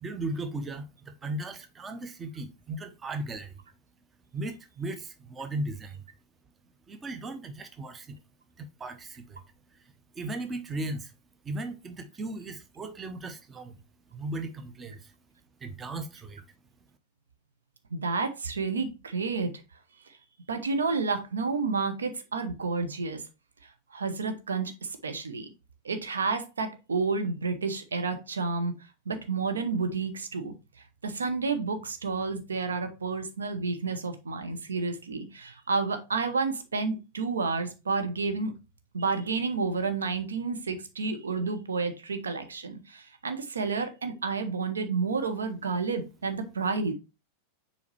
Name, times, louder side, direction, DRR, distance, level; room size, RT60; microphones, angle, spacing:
voice 1, 0.0-3.5 4.3-6.0 6.9-8.2 8.6-9.4 9.8-11.1 11.4-13.8 14.1-15.1 15.6-16.4, right 2 dB, 20° right, 0.8 m, -37 dB
voice 2, 17.9-19.6 20.5-23.2 23.9-25.5 25.8-28.8 29.1-30.5 31.0-38.5 38.9-46.9, right 4 dB, 70° right, 1.0 m, -30 dB
7.2 x 4.4 x 3.2 m
figure-of-eight pair, 90°, 0 cm